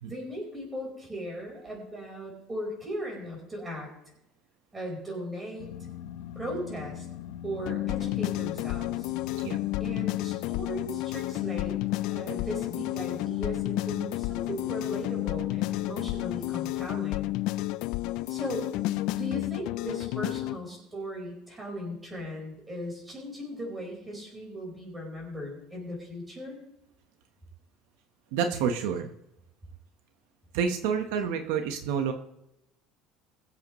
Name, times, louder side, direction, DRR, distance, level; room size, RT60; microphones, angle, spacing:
voice 1, 0.1-3.9 4.7-5.7 6.3-7.0 7.4-9.1 9.8-11.8 12.1-17.3 18.3-18.7 19.1-26.6, equal, 10° right, -1 dB, 4.7 m, -38 dB
sound 1, 5.6-16.6, left 11 dB, 90° left, 0.8 m, -43 dB
sound 2, 7.7-20.6, left 17 dB, 60° left, 0.4 m, -31 dB
voice 2, 28.3-29.1 30.5-32.1, right 7 dB, 80° right, 6 dB, 1.1 m, -28 dB
22.0 x 8.1 x 3.1 m, 0.84 s
cardioid pair, 180°, 0 cm